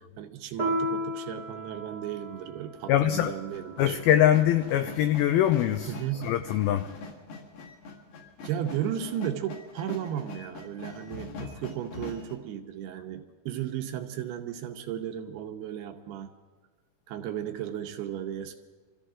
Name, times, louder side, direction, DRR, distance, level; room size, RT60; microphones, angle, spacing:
voice 1, 0.0-4.0 5.9-6.3 8.4-16.3 17.1-18.6, right 10 dB, 75° right, 2.8 m, -35 dB
Piano, 0.6-5.5, equal, 30° right, 0.6 m, -36 dB
voice 2, 2.9-3.3 3.8-6.9, left 11 dB, 85° left, 2.1 m, -23 dB
sound 1, 3.5-12.3, left 3 dB, 65° left, 4.0 m, -43 dB
26.0 x 14.5 x 3.7 m
omnidirectional pair, 5.0 m